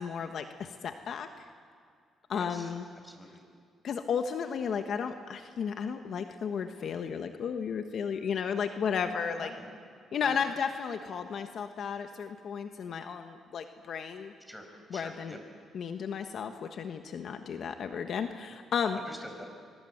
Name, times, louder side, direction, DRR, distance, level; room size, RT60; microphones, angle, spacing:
voice 1, 0.0-1.4 2.3-2.8 3.8-9.5 10.1-14.3 14.9-15.4 15.7-19.0, left 7 dB, 60° left, 7 dB, 1.3 m, -33 dB
voice 2, 2.3-2.8 3.0-3.4 9.4-9.7 10.0-10.4 14.5-14.7 14.9-15.4 18.9-19.5, equal, 5° left, 4 dB, 5.6 m, -46 dB
25.5 x 23.5 x 7.9 m, 2.2 s
cardioid pair, 90°, 0 cm